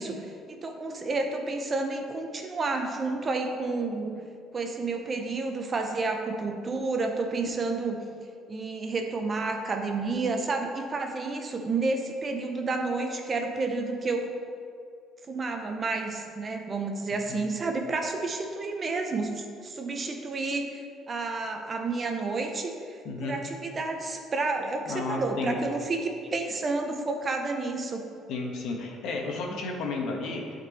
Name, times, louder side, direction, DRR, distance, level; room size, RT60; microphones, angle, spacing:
voice 1, 0.0-4.2 4.5-8.0 8.5-14.3 15.3-28.0, right 3 dB, 25° right, 4 dB, 0.7 m, -30 dB
voice 2, 23.0-23.4 24.9-25.6 28.3-30.7, left 3 dB, 65° left, 1 dB, 1.3 m, -33 dB
11.0 x 4.5 x 4.2 m, 2.3 s
cardioid pair, 145°, 0 cm